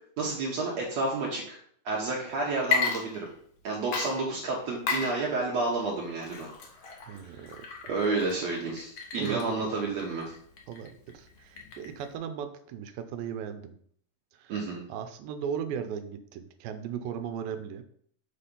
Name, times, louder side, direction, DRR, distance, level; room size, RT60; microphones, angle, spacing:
voice 1, 0.2-1.6 1.9-3.3 3.6-6.5 7.1-7.4 7.9-10.3 14.5-14.8, right 3 dB, 65° right, -2 dB, 1.9 m, -30 dB
Water / Liquid, 2.6-3.6 3.9-12.1, left 5 dB, 85° left, 1.1 m, -35 dB
voice 2, 7.1-7.5 9.2-9.6 10.7-13.7 14.4-14.5 14.9-17.8, right 8 dB, 90° right, 9 dB, 2.4 m, -37 dB
7.0 x 4.3 x 5.2 m, 0.62 s
omnidirectional pair, 4.1 m